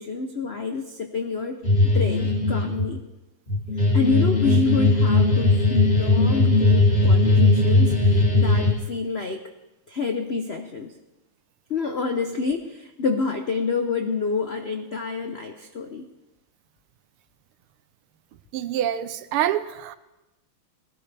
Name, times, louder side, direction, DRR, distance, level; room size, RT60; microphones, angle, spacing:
voice 1, 0.0-1.6 1.9-3.0 3.9-9.5 9.9-10.9 11.7-16.0, left 4 dB, 70° left, 5 dB, 0.6 m, -28 dB
sound 1, 1.6-2.9 3.5-8.7, left 2 dB, 25° left, 3.4 m, -19 dB
voice 2, 18.5-20.0, right 11 dB, 85° right, 12 dB, 1.6 m, -26 dB
19.5 x 16.5 x 3.4 m, 1.0 s
omnidirectional pair, 2.4 m